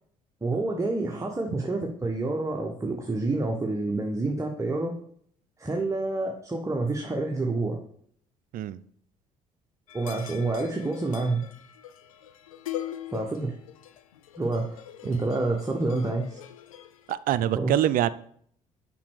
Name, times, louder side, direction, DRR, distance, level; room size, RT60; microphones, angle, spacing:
voice 1, 0.4-4.9 5.6-7.8 9.9-11.4 13.1-13.5 14.4-16.4 17.6-17.8, right 2 dB, 20° right, 1 dB, 1.3 m, -28 dB
sound 1, 9.9-17.1, left 12 dB, 85° left, 0.5 m, -42 dB
voice 2, 17.1-18.1, right 12 dB, 55° right, 16 dB, 0.5 m, -25 dB
5.8 x 5.4 x 6.4 m, 0.63 s
hypercardioid pair, 50°, 17 cm